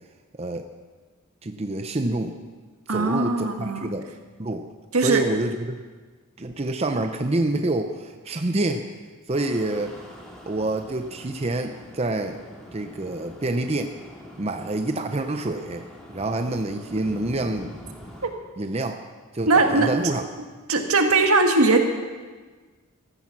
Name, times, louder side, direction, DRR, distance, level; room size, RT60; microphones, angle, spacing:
voice 1, 1.4-2.4 2.9-4.1 4.4-4.6 5.0-5.7 6.4-8.9 9.3-9.9 10.5-12.4 12.7-13.9 14.4-17.7 18.6-19.0 19.3-20.2, right 2 dB, 30° right, 6 dB, 0.6 m, -27 dB
voice 2, 2.9-3.9 4.9-5.2 18.2-18.3 19.5-20.0 20.7-21.8, right 3 dB, 80° right, 4 dB, 1.8 m, -20 dB
sound 1, 9.3-18.3, equal, 5° left, 2.3 m, -44 dB
15.0 x 14.0 x 6.0 m, 1.4 s
head